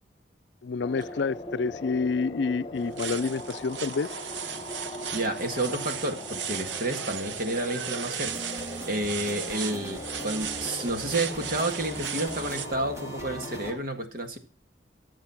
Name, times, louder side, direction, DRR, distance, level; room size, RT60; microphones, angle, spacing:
voice 1, 0.6-4.1, left 4 dB, 75° left, 0.5 m, -28 dB
sound 1, 0.8-13.8, left 1 dB, 30° left, 1.1 m, -40 dB
sound 2, 2.7-12.7, right 9 dB, 80° right, 0.8 m, -37 dB
voice 2, 4.8-14.4, right 2 dB, 55° right, 1.8 m, -31 dB
sound 3, 8.2-13.7, equal, 15° right, 1.8 m, -41 dB
13.5 x 7.5 x 5.9 m
head